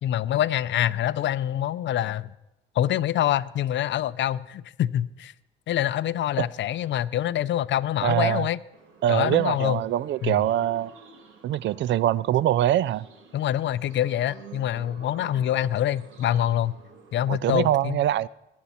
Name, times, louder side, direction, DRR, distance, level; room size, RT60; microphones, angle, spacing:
voice 1, 0.0-2.3 2.8-5.3 5.7-8.6 9.1-9.8 10.2-10.4 13.3-16.8 17.1-18.0, left 11 dB, 65° left, 0.5 m, -25 dB
voice 2, 8.0-8.5 9.0-10.9 11.4-13.1 17.3-18.3, right 12 dB, 65° right, 0.4 m, -23 dB
sound 1, 8.7-17.4, right 4 dB, 85° right, 2.3 m, -50 dB
20.5 x 9.3 x 4.3 m
cardioid pair, 90°, 20 cm